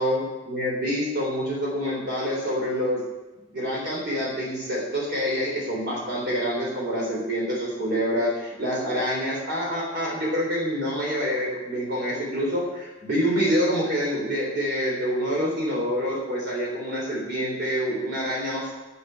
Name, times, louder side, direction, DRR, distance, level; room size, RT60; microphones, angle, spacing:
voice 1, 0.0-3.0 3.5-18.7, equal, 60° right, -4 dB, 3.8 m, -26 dB
8.8 x 8.2 x 8.0 m, 1.1 s
head